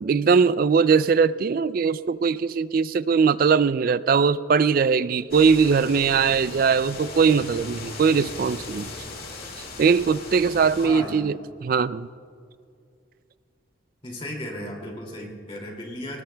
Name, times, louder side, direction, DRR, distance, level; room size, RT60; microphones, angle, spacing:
voice 1, 0.0-8.9 9.8-12.1, right 5 dB, 45° right, 16 dB, 0.3 m, -20 dB
sound 1, 5.3-10.9, left 3 dB, 45° left, 2.1 m, -38 dB
voice 2, 10.8-11.3 14.0-16.2, left 1 dB, 25° left, 0 dB, 2.5 m, -35 dB
20.0 x 19.5 x 2.3 m, 2.3 s
head